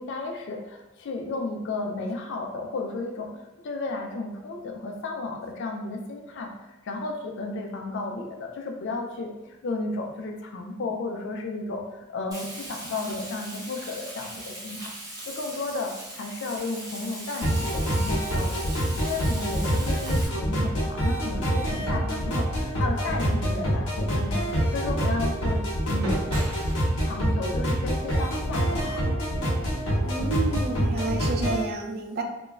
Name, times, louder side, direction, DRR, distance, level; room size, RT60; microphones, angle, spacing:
voice 1, 0.0-3.3 3.6-14.9 15.3-18.7 19.0-24.4 24.7-25.6 25.9-26.2 27.0-29.0, left 3 dB, 55° left, 2 dB, 0.4 m, -33 dB
Frying (food), 12.3-20.3, right 1 dB, 15° right, 0.7 m, -39 dB
sound 1, 17.4-31.6, equal, 75° left, 0.7 m, -26 dB
sound 2, 23.8-29.4, right 1 dB, 85° right, 0.8 m, -41 dB
voice 2, 30.0-32.2, right 3 dB, 45° right, 2 dB, 0.3 m, -30 dB
3.0 x 2.2 x 2.3 m, 0.98 s
head